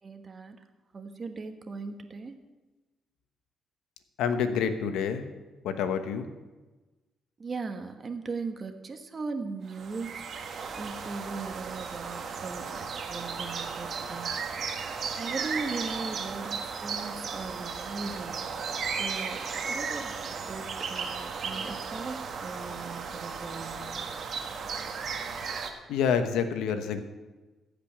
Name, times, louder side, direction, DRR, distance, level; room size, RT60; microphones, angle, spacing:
voice 1, 0.0-0.6 0.9-2.3 7.4-10.3 10.7-14.8 15.1-18.6 19.0-23.9, right 4 dB, 35° right, 7 dB, 1.3 m, -39 dB
voice 2, 4.2-5.2 5.6-6.3 25.9-27.0, left 7 dB, 90° left, 9 dB, 1.1 m, -27 dB
sound 1, 9.7-25.7, right 5 dB, 55° right, 1.4 m, -35 dB
14.5 x 5.2 x 8.7 m, 1.2 s
cardioid pair, 90°, 0 cm